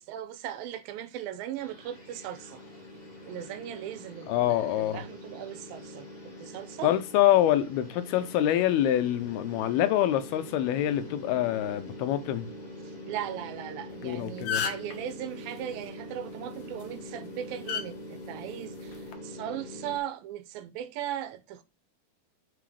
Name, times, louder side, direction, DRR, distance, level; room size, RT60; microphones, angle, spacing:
voice 1, 0.0-2.6 3.3-6.9 12.8-21.6, right 11 dB, 80° right, 2.4 m, -38 dB
sound 1, 1.6-20.0, left 1 dB, 15° left, 1.4 m, -44 dB
voice 2, 4.3-5.0 6.8-12.5 14.0-14.6, left 12 dB, 85° left, 2.7 m, -25 dB
sound 2, 13.9-14.0 14.3-15.0 16.6-16.8 17.7-17.9 18.9-19.1, left 7 dB, 70° left, 1.8 m, -30 dB
6.1 x 5.9 x 4.9 m
omnidirectional pair, 4.4 m